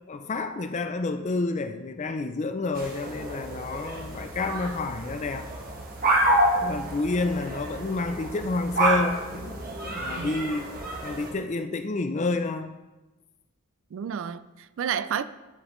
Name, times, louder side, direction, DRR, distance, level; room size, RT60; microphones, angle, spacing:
voice 1, 0.1-5.5 6.6-10.7 11.0-12.7, left 3 dB, 30° left, 0.4 m, -29 dB
sound 1, 2.8-11.3, right 1 dB, 40° right, 1.3 m, -28 dB
voice 2, 13.9-15.2, right 8 dB, 60° right, 0.3 m, -31 dB
12.0 x 5.1 x 3.1 m
head